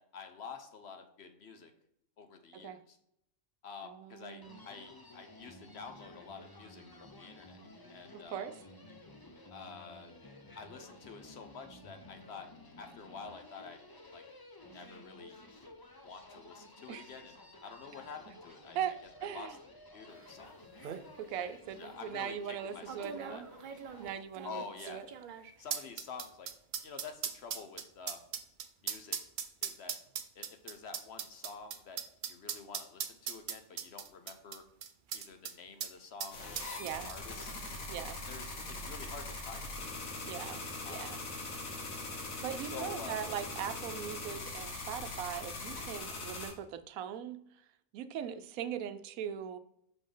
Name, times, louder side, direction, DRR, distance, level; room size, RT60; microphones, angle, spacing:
voice 1, 0.0-1.7 2.2-3.0 3.6-7.6 7.9-8.5 9.5-10.1 10.6-12.5 12.8-13.8 14.1-14.2 14.7-15.4 16.0-18.8 19.2-19.6 19.9-20.5 21.4-21.5 21.8-23.4 24.4-25.1 25.6-26.5 26.8-28.3 28.8-29.2 29.6-29.9 30.4-32.0 32.3-34.6 35.1-37.5 38.3-39.8 40.8-41.1 42.6-43.2 48.2-48.4, left 5 dB, 60° left, 7 dB, 0.9 m, -48 dB
voice 2, 3.8-4.6 8.1-8.5 16.9-17.1 18.7-18.9 19.2-19.5 21.2-23.5 24.0-25.0 36.8-37.1 37.9-38.2 40.2-41.2 42.4-47.4 47.9-49.6, right 9 dB, 90° right, 10 dB, 1.0 m, -40 dB
Human voice, 4.4-24.2, left 1 dB, 25° left, 0.5 m, -54 dB
sound 1, 20.3-20.4 20.6-21.0 21.8-21.9 22.9-35.5 35.8-35.9 36.2-37.4 37.7-37.8, right 8 dB, 65° right, 0.4 m, -40 dB
sound 2, 36.3-46.5, left 2 dB, 85° left, 1.7 m, -41 dB
6.1 x 5.2 x 3.8 m, 0.75 s
omnidirectional pair, 1.4 m